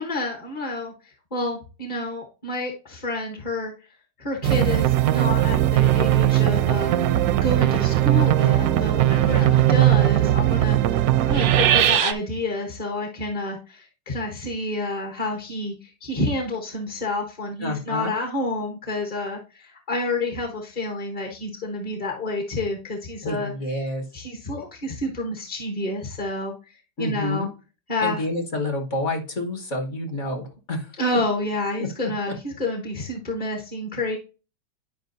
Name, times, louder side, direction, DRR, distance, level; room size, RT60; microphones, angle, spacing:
voice 1, 0.0-3.9 4.2-6.9 7.4-23.5 23.8-26.5 27.0-27.5 27.9-28.2 31.0-34.2, left 2 dB, 30° left, 1 dB, 0.9 m, -29 dB
sound 1, 4.4-12.1, right 13 dB, 70° right, 0.9 m, -19 dB
voice 2, 9.2-9.6 17.6-18.1 23.2-24.0 27.0-27.5 28.0-30.9, left 2 dB, 45° left, 4 dB, 1.5 m, -28 dB
10.5 x 5.0 x 2.6 m, 0.32 s
omnidirectional pair, 1.9 m